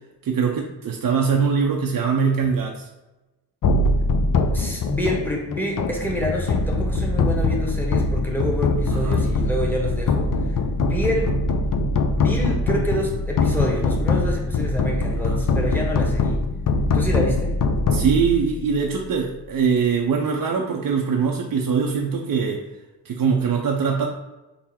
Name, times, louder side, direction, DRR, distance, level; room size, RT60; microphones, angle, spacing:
voice 1, 0.2-2.9 8.9-9.2 15.3-15.4 17.9-22.6 23.1-24.1, right 6 dB, 50° right, 0 dB, 0.5 m, -22 dB
sound 1, 3.6-18.9, left 3 dB, 50° left, 0.5 m, -22 dB
voice 2, 4.5-11.3 12.2-16.4 16.9-17.6, equal, 5° left, -1 dB, 1.2 m, -27 dB
3.7 x 2.0 x 4.2 m, 1.1 s
cardioid pair, 40°, 44 cm